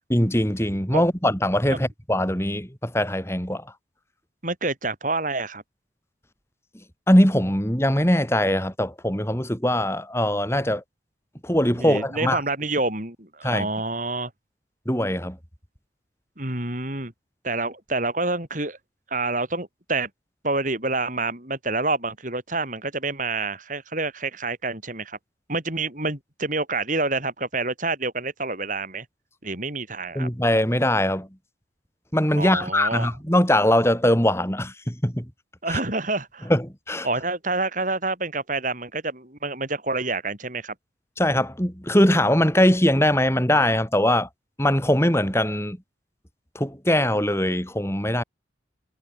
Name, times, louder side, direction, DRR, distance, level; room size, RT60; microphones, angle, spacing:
voice 1, 0.1-3.7 7.1-10.8 11.4-12.4 13.4-13.7 14.9-15.4 30.1-31.3 32.1-35.3 35.7-35.8 36.5-37.1 41.2-44.3 44.6-45.8 46.5-48.2, left 1 dB, 15° left, 7.8 m, -21 dB
voice 2, 4.4-5.6 11.8-14.3 16.4-17.1 17.4-18.8 19.1-20.1 20.4-25.2 25.5-29.1 29.4-30.3 32.4-33.1 35.6-36.5 37.0-40.7, right 3 dB, 45° right, 5.9 m, -27 dB
head